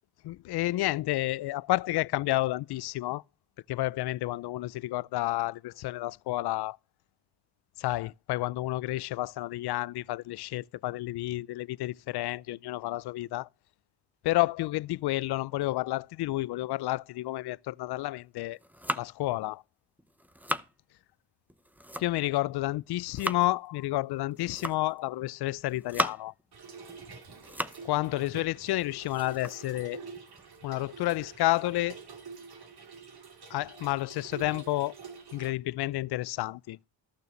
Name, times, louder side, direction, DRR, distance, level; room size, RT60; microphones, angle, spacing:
voice 1, 0.2-3.2 3.7-6.8 7.8-13.5 14.2-18.6 19.0-19.6 22.0-26.3 27.8-30.0 30.6-32.0 33.5-34.9 35.3-36.8, left 17 dB, 65° left, 0.5 m, -30 dB
sound 1, 18.4-19.3 20.0-20.7 21.5-22.4 22.8-23.5 24.3-25.0 25.5-26.4 26.9-27.9 28.3-28.4 28.8-30.6, right 1 dB, 5° right, 0.8 m, -37 dB
Trickle dribble / Fill (with liquid), 26.5-35.5, right 5 dB, 60° right, 2.9 m, -47 dB
14.0 x 6.7 x 5.1 m
cardioid pair, 85°, 43 cm